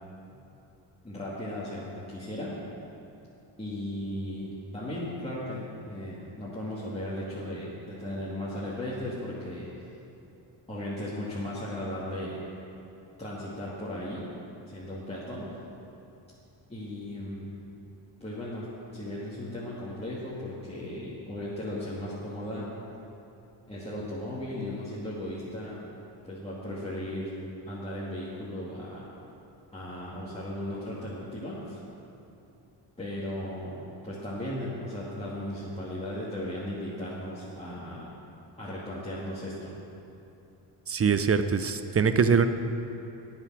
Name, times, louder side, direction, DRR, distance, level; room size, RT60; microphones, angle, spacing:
voice 1, 1.0-2.5 3.6-9.7 10.7-12.4 13.2-14.3 14.7-15.5 16.7-17.5 18.2-18.7 18.9-22.7 23.7-25.8 26.2-27.3 27.7-29.1 29.7-31.8 33.0-38.1 38.6-39.7, left 1 dB, 15° left, -9 dB, 2.4 m, -36 dB
voice 2, 40.9-42.5, right 6 dB, 30° right, 10 dB, 0.6 m, -23 dB
9.4 x 8.8 x 6.2 m, 2.8 s
cardioid pair, 70°, 47 cm